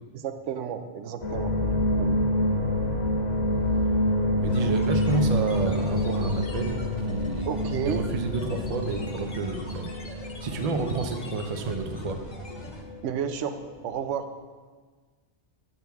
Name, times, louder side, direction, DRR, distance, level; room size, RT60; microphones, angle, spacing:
voice 1, 0.1-2.2 7.4-8.0 13.0-13.6 13.8-14.3, right 8 dB, 85° right, 9 dB, 0.9 m, -32 dB
sound 1, 1.2-13.3 13.6-14.0, left 1 dB, 85° left, 1.5 m, -27 dB
voice 2, 4.4-6.8 7.1-7.5 7.8-9.9 10.4-12.2, right 4 dB, 45° right, 5 dB, 0.6 m, -30 dB
sound 2, 4.5-12.8, left 1 dB, 40° left, 1.0 m, -43 dB
8.9 x 5.8 x 3.4 m, 1.5 s
omnidirectional pair, 1.2 m